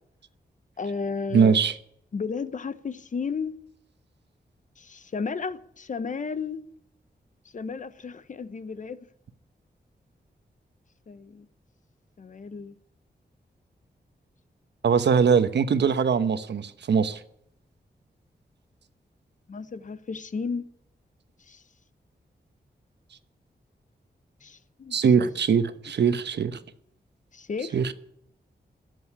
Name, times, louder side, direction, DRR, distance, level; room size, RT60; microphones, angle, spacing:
voice 1, 0.8-1.6 2.1-3.6 4.8-6.6 7.4-9.1 11.1-11.5 12.2-12.8 19.5-20.7 21.4-21.6 24.4-25.3 27.3-27.8, left 5 dB, 45° left, 0.9 m, -33 dB
voice 2, 1.3-1.7 14.8-17.2 24.9-26.6 27.7-27.9, right 6 dB, 85° right, 1.0 m, -21 dB
16.5 x 7.9 x 9.8 m
wide cardioid pair, 170°, 17 cm